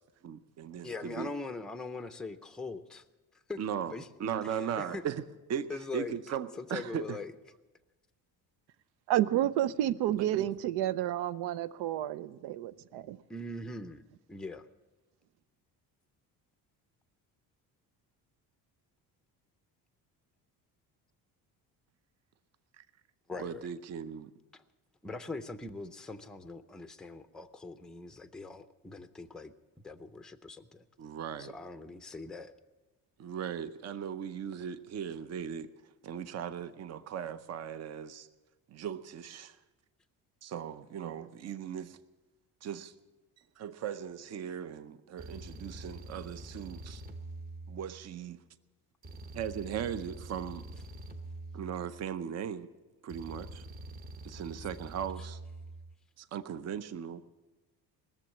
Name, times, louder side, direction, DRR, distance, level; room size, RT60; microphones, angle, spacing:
voice 1, 0.2-1.3 3.6-3.9 4.2-5.2 5.5-7.2 10.2-10.5 22.8-22.9 23.4-24.3 31.0-31.5 33.2-38.3 38.7-39.6 40.4-42.0 42.6-42.9 43.6-47.0 47.7-48.4 49.3-50.6 51.5-52.7 53.0-53.6 54.2-55.4 56.2-57.2, right 8 dB, 45° right, 12 dB, 0.7 m, -38 dB
voice 2, 0.8-3.0 3.3-3.6 3.9-4.1 4.4-5.0 5.7-6.2 6.6-7.3 13.3-14.0 14.3-14.7 23.3-23.7 24.5-24.6 25.0-29.5 29.8-30.9 31.4-32.5, left 3 dB, ahead, 9 dB, 0.5 m, -42 dB
voice 3, 9.1-13.2, right 12 dB, 85° right, 15 dB, 0.7 m, -30 dB
sound 1, 45.2-48.3 49.0-52.3 53.1-55.9, right 2 dB, 25° right, 1.0 m, -45 dB
19.5 x 7.2 x 8.6 m, 1.1 s
cardioid pair, 135°, 38 cm